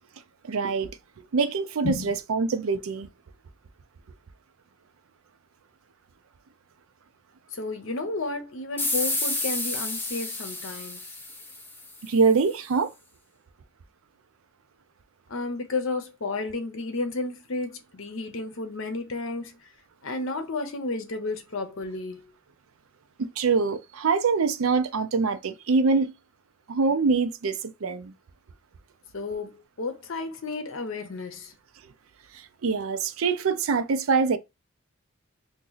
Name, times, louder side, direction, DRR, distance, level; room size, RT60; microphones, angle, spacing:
voice 1, 0.4-1.0 1.3-3.1 12.0-12.9 23.2-26.1 26.7-28.1 32.3-34.4, right 4 dB, 75° right, 0.5 m, -24 dB
voice 2, 1.8-2.2 7.5-11.0 15.3-19.7 20.0-22.3 29.1-31.5, left 3 dB, 65° left, 0.7 m, -32 dB
sound 1, 8.8-12.1, left 2 dB, 10° left, 0.5 m, -30 dB
2.9 x 2.6 x 3.9 m
head